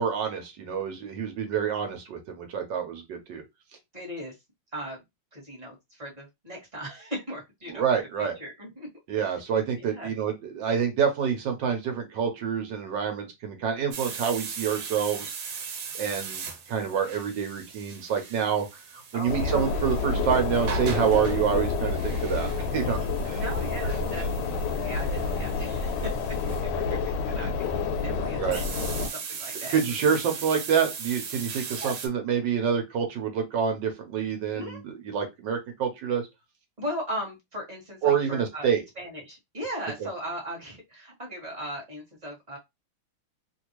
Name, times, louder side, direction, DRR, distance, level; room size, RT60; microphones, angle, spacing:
voice 1, 0.0-3.4 7.7-8.4 9.1-15.3 15.9-18.7 19.1-23.4 28.4-28.6 29.7-36.2 38.0-38.8, right 7 dB, 65° right, 5 dB, 1.3 m, -27 dB
voice 2, 3.9-4.3 4.7-5.0 5.3-7.9 8.2-8.9 9.7-10.1 19.1-19.6 23.3-24.3 24.8-30.3 31.5-31.9 34.5-34.8 36.8-38.7 38.9-42.6, equal, 20° right, -2 dB, 1.3 m, -38 dB
sound 1, 13.9-26.6 28.5-32.1, right 6 dB, 85° right, 1.7 m, -39 dB
sound 2, 19.3-29.1, left 4 dB, 70° left, 1.1 m, -29 dB
3.2 x 2.6 x 3.0 m, 0.20 s
omnidirectional pair, 2.3 m